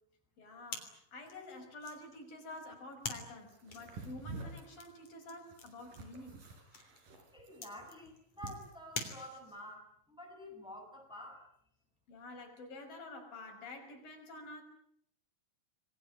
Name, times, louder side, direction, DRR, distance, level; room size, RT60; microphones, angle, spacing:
voice 1, 0.4-6.4 12.1-14.6, left 2 dB, 80° left, 3 dB, 7.3 m, -49 dB
sound 1, 0.7-9.7, left 4 dB, 50° left, 4.5 m, -48 dB
sound 2, 3.5-9.3, right 2 dB, 70° right, 6.2 m, -49 dB
voice 2, 7.3-11.4, left 1 dB, ahead, 1 dB, 7.7 m, -49 dB
27.0 x 22.5 x 8.7 m, 0.67 s
omnidirectional pair, 4.0 m